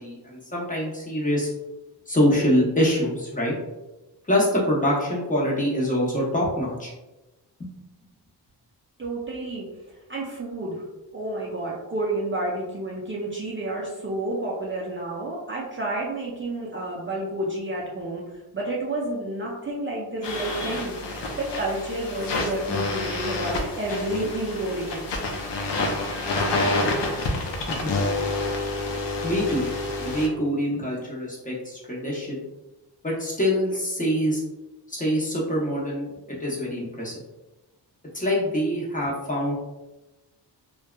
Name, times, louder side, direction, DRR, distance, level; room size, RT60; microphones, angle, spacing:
voice 1, 0.0-1.5 2.1-3.5 4.3-6.9 7.6-7.7 27.8-27.9 29.2-29.7 30.0-32.4 33.0-34.4 34.9-37.2 38.1-39.5, equal, 20° left, -5 dB, 0.7 m, -25 dB
voice 2, 9.0-9.7 10.1-10.8 11.1-18.2 18.5-21.0 21.3-25.1, right 2 dB, 30° right, -4 dB, 0.4 m, -30 dB
sound 1, 20.2-30.3, left 2 dB, 75° left, 0.6 m, -28 dB
2.6 x 2.2 x 2.2 m, 1.0 s
wide cardioid pair, 95°, 42 cm